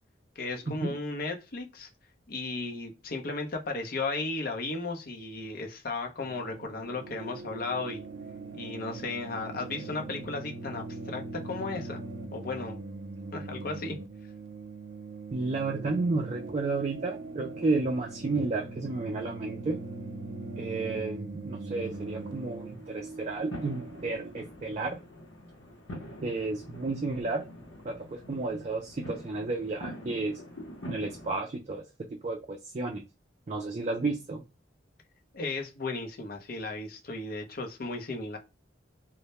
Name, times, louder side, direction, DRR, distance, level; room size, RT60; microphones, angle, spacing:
voice 1, 0.4-1.9 2.3-8.0 8.5-12.0 12.3-12.8 13.3-14.0 26.2-26.3 35.3-38.4, left 3 dB, 55° left, 2 dB, 0.6 m, -35 dB
sound 1, 6.2-24.3, right 3 dB, 85° right, 0.5 m, -41 dB
voice 2, 15.3-19.8 20.6-25.0 26.2-27.4 27.8-30.4 30.9-31.8 32.2-33.0 33.5-34.4, right 3 dB, 35° right, 0 dB, 0.4 m, -32 dB
sound 2, 21.8-31.4, equal, 85° left, 0.8 m, -45 dB
2.1 x 2.1 x 2.8 m, 0.27 s
head